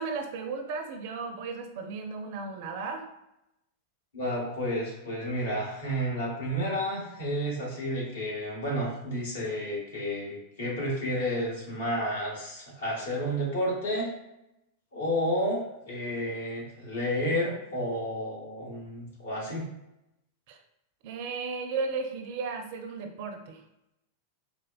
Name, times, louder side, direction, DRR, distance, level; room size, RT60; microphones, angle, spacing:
voice 1, 0.0-3.1 20.5-20.6 21.0-23.6, right 4 dB, 50° right, 5 dB, 0.5 m, -35 dB
voice 2, 4.1-14.1 14.9-19.6, equal, 65° left, -5 dB, 1.4 m, -31 dB
4.3 x 2.1 x 2.3 m, 0.86 s
figure-of-eight pair, 90°, 0 cm